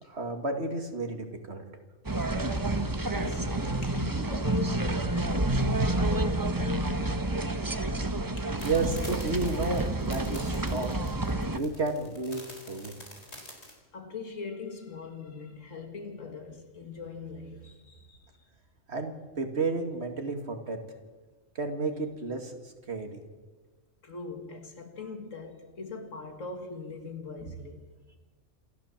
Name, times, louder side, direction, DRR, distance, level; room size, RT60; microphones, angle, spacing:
voice 1, 0.1-1.6 8.6-10.9 11.5-12.9 18.9-20.8 21.6-22.5 22.9-23.2, right 3 dB, 55° right, 2.5 m, -32 dB
sound 1, 2.0-11.6, right 2 dB, 15° right, 1.0 m, -29 dB
voice 2, 3.0-7.6 8.4-8.6 13.9-18.3 24.0-27.9, left 4 dB, 80° left, 2.4 m, -41 dB
sound 2, 8.6-13.7, left 1 dB, 55° left, 4.3 m, -47 dB
27.0 x 13.5 x 7.4 m
omnidirectional pair, 1.3 m